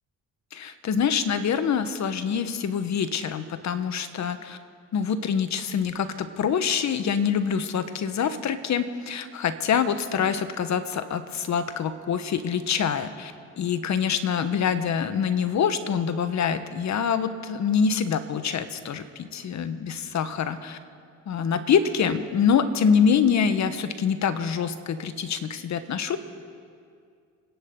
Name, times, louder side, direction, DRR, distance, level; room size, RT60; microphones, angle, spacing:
voice 1, 0.5-4.6 4.9-20.8 21.3-26.2, left 7 dB, 55° left, 11 dB, 1.2 m, -25 dB
28.5 x 10.5 x 3.8 m, 2.2 s
supercardioid pair, 65°, 33 cm